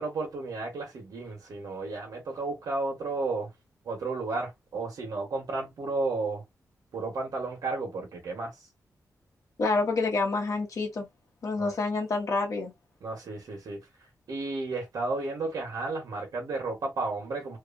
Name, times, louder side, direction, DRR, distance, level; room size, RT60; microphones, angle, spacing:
voice 1, 0.0-3.5 3.8-6.4 6.9-8.5 11.6-11.7 13.0-13.8 14.3-17.6, right 3 dB, 80° right, 1.1 m, -33 dB
voice 2, 9.6-11.1 11.4-12.7, left 3 dB, 60° left, 1.0 m, -28 dB
2.8 x 2.4 x 2.5 m
wide cardioid pair, 120°, 6 cm